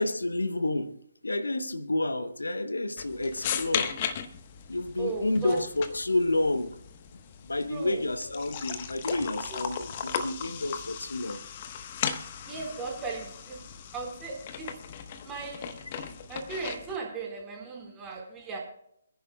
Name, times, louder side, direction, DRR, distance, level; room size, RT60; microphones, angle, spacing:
voice 1, 0.0-4.0 4.7-6.8 7.4-11.4, left 2 dB, 75° left, 0.8 m, -30 dB
sound 1, 3.0-17.0, left 7 dB, 35° left, 1.0 m, -37 dB
voice 2, 5.0-5.6 7.7-8.0 12.5-13.6 13.9-14.9 15.2-15.8 16.3-18.6, right 4 dB, 15° right, 3.9 m, -37 dB
27.0 x 10.5 x 2.2 m
figure-of-eight pair, 135°, 0 cm